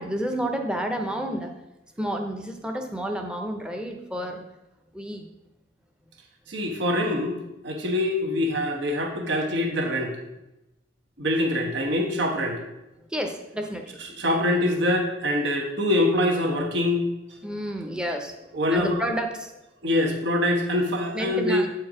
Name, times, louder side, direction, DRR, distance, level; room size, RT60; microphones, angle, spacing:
voice 1, 0.0-1.6 2.0-4.5 4.9-5.3 13.1-13.9 17.4-18.4 18.7-19.5 21.1-21.7, right 1 dB, 5° right, 4 dB, 0.7 m, -30 dB
voice 2, 6.5-7.4 7.6-10.1 11.2-12.6 14.2-17.0 18.5-19.0 19.8-21.6, left 1 dB, 70° right, 2 dB, 1.1 m, -24 dB
8.0 x 4.6 x 4.9 m, 0.93 s
head